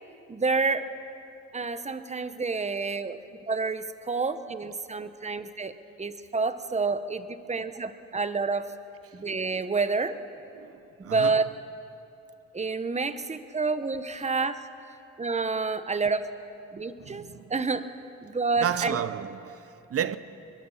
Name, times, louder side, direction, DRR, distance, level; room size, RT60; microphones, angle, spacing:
voice 1, 0.3-0.9 1.5-3.2 3.5-5.7 6.0-8.7 9.1-10.2 11.0-11.5 12.5-14.6 15.2-16.3 16.7-17.9 18.2-19.0, right 4 dB, 20° right, 1.0 m, -28 dB
voice 2, 10.5-11.4 17.0-17.5 18.6-20.2, right 9 dB, 50° right, 0.8 m, -32 dB
22.5 x 22.5 x 5.7 m
cardioid pair, 90°, 30 cm